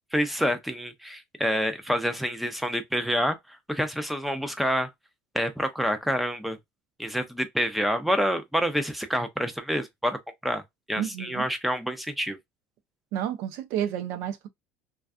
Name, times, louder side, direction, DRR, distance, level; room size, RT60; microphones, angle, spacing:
voice 1, 0.1-3.4 3.7-4.9 5.3-6.6 7.0-10.6 10.9-12.4, equal, ahead, 0.5 m, -27 dB
voice 2, 11.0-11.5 13.1-14.5, right 10 dB, 70° right, 0.6 m, -31 dB
2.5 x 2.3 x 2.3 m
cardioid pair, 135°, 5 cm